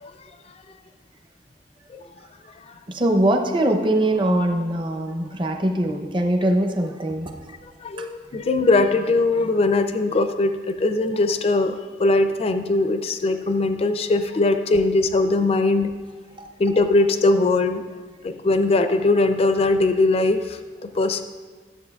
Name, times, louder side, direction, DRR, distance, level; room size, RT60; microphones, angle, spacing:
voice 1, 2.9-7.4 8.0-8.1 16.4-16.5, right 1 dB, 30° right, 3 dB, 0.6 m, -22 dB
voice 2, 7.8-15.9 16.6-17.8 18.2-21.2, left 2 dB, 35° left, 8 dB, 0.4 m, -20 dB
12.0 x 7.4 x 2.3 m, 1.4 s
head